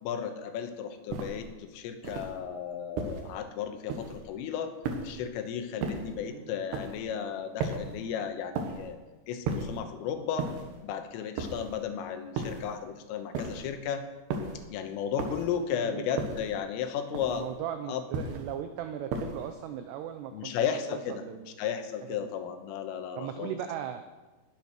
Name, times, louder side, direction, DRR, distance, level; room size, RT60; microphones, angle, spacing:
voice 1, 0.0-4.7 5.0-9.0 9.3-10.5 10.8-14.1 14.7-17.5 17.9-18.0 20.3-21.2 21.6-23.5, left 8 dB, 90° left, 7 dB, 3.7 m, -34 dB
sound 1, 1.1-1.5 2.0-2.4 3.0-3.3 3.9-4.3 4.8-5.3 5.8-6.2 6.7-7.1 7.6-8.0 8.6-8.9 9.5-9.8 10.4-10.8 11.4-11.8 12.4-12.7 13.3-13.8 14.3-14.7 15.2-15.6 16.2-16.6 17.1-17.5 18.1-18.5 19.1-19.5, right 4 dB, 65° right, 3.1 m, -35 dB
voice 2, 6.2-6.6 15.2-15.4 15.7-16.3 17.3-20.6 20.9-21.6 22.1-22.3 23.2-24.0, right 10 dB, 90° right, 8 dB, 2.4 m, -38 dB
19.5 x 8.2 x 6.1 m, 1.2 s
omnidirectional pair, 5.7 m